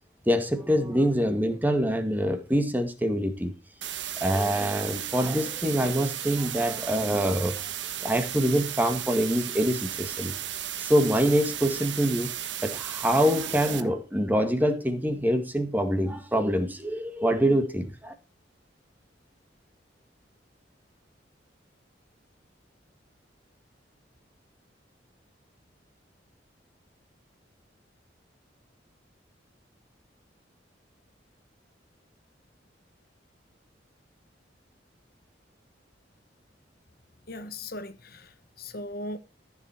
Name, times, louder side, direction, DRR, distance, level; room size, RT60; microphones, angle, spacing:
voice 1, 0.3-3.5 4.2-7.6 8.0-10.3 10.8-12.3 12.6-18.1, equal, 10° right, 1.7 m, -25 dB
sound 1, 3.8-13.8, right 11 dB, 75° right, 1.3 m, -35 dB
voice 2, 37.3-39.2, left 1 dB, 55° left, 1.3 m, -38 dB
14.5 x 7.1 x 4.5 m
head